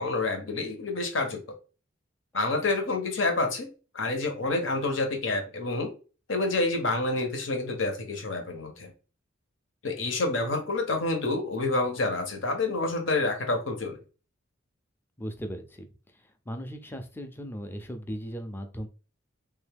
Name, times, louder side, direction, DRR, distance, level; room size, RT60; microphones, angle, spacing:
voice 1, 0.0-1.4 2.3-3.7 3.9-5.9 6.3-8.9 9.8-14.0, left 2 dB, 75° left, 4 dB, 1.0 m, -28 dB
voice 2, 15.2-15.9 16.1-18.9, equal, 10° left, 6 dB, 0.5 m, -37 dB
3.5 x 2.7 x 3.4 m, 0.35 s
head